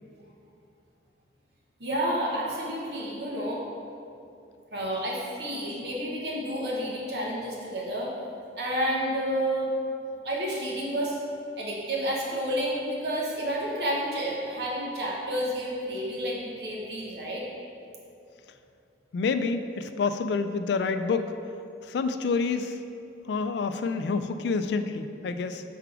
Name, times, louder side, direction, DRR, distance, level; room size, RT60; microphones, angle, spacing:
voice 1, 1.8-3.6 4.7-8.1 8.5-9.7 10.2-11.2 11.6-17.4, equal, 70° right, -4 dB, 1.0 m, -30 dB
voice 2, 19.1-21.3 21.8-22.8 23.3-25.6, left 4 dB, 70° left, 9 dB, 0.3 m, -28 dB
4.6 x 3.9 x 5.7 m, 2.6 s
head